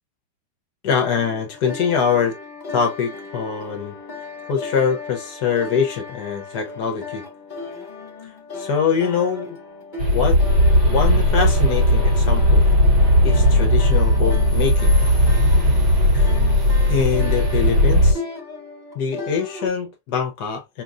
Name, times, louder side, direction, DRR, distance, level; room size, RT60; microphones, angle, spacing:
voice 1, 0.8-2.3 2.7-3.9 4.5-7.2 8.5-9.6 10.1-10.4 10.9-12.6 13.2-14.9 16.1-16.3 16.9-18.2 18.9-20.8, left 6 dB, 60° left, 1.3 m, -23 dB
sound 1, 0.9-19.7, left 3 dB, 25° left, 1.4 m, -36 dB
sound 2, 10.0-18.1, left 1 dB, 55° right, 3.7 m, -16 dB
5.3 x 2.9 x 2.4 m
omnidirectional pair, 2.1 m